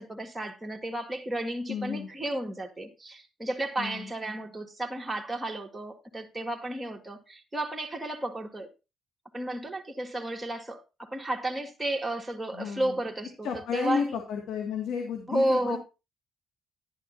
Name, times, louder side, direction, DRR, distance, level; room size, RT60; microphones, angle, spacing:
voice 1, 0.0-8.7 9.3-14.2 15.3-15.8, right 1 dB, 15° right, 1.9 m, -32 dB
voice 2, 1.7-2.1 3.8-4.1 12.5-13.0 13.4-15.8, left 6 dB, 75° left, 2.0 m, -32 dB
11.0 x 11.0 x 2.7 m
supercardioid pair, 70°, 0 cm